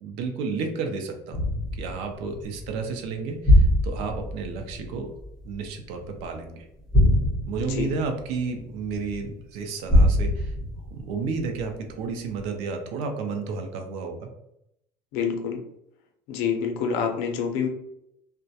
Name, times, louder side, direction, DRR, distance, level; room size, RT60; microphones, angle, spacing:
voice 1, 0.0-1.5 1.7-5.1 5.4-6.7 7.5-10.5 10.9-14.3, right 4 dB, 70° right, 4 dB, 0.5 m, -32 dB
sound 1, 1.3-6.3 6.9-9.3 9.9-11.9 12.4-12.5, left 1 dB, 5° left, 1.0 m, -23 dB
voice 2, 7.6-7.9 15.1-15.6 16.3-17.7, left 6 dB, 75° left, 4 dB, 0.5 m, -27 dB
2.3 x 2.1 x 2.7 m, 0.80 s
cardioid pair, 175°, 11 cm